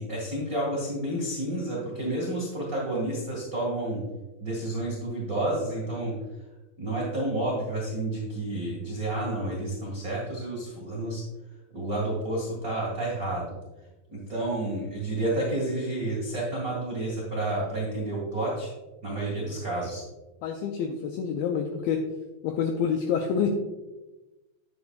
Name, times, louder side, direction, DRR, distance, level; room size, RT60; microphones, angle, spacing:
voice 1, 0.0-4.0 4.4-6.1 6.8-11.2 11.7-13.5 14.1-18.7 19.0-20.0, right 1 dB, 65° right, -4 dB, 0.8 m, -30 dB
voice 2, 20.4-22.0 22.4-23.5, left 7 dB, 85° left, 4 dB, 2.1 m, -27 dB
9.6 x 8.8 x 2.3 m, 1.1 s
omnidirectional pair, 4.9 m